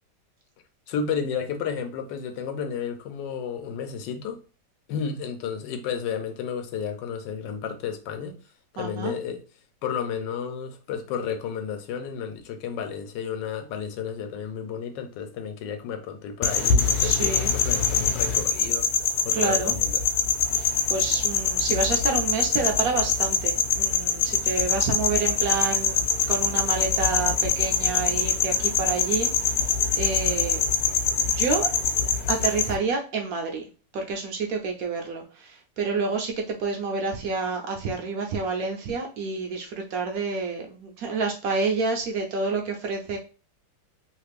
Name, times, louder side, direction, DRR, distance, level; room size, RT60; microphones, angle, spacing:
voice 1, 0.9-4.4 4.9-8.4 8.7-9.4 9.8-18.9 19.2-20.0, left 7 dB, 90° left, 1.3 m, -32 dB
voice 2, 8.8-9.1 17.0-17.5 19.3-19.7 20.5-30.6 31.3-31.7 32.3-33.6 33.9-43.2, right 4 dB, 70° right, 0.9 m, -29 dB
sound 1, 16.4-32.8, left 6 dB, 70° left, 1.1 m, -24 dB
3.1 x 2.4 x 3.3 m
omnidirectional pair, 1.9 m